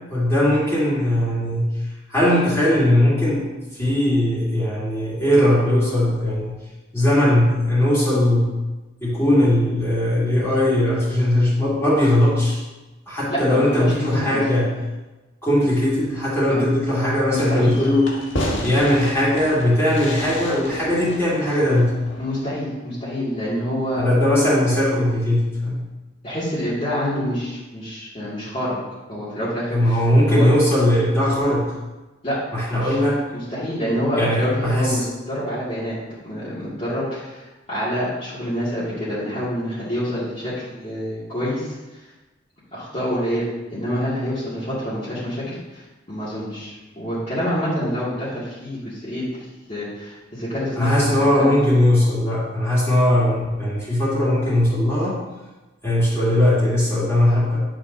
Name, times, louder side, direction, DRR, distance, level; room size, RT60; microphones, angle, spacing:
voice 1, 0.1-1.7 2.1-6.6 6.9-8.6 9.0-12.6 13.1-14.8 15.4-18.2 18.6-22.0 24.0-25.8 29.7-31.7 32.5-33.2 34.2-35.0 50.8-55.2 55.8-57.6, left 1 dB, 15° left, -10 dB, 2.9 m, -19 dB
voice 2, 13.3-14.4 16.5-16.6 17.3-17.7 22.2-24.0 26.2-28.8 29.1-30.0 30.3-30.5 32.2-32.4 32.7-33.0 33.3-36.0 36.2-42.0 42.7-49.2 49.7-51.1 51.4-51.5, equal, 30° left, -12 dB, 2.3 m, -27 dB
Fireworks, 17.4-22.6, left 1 dB, 75° left, 1.5 m, -32 dB
11.0 x 6.5 x 2.8 m, 1.1 s
head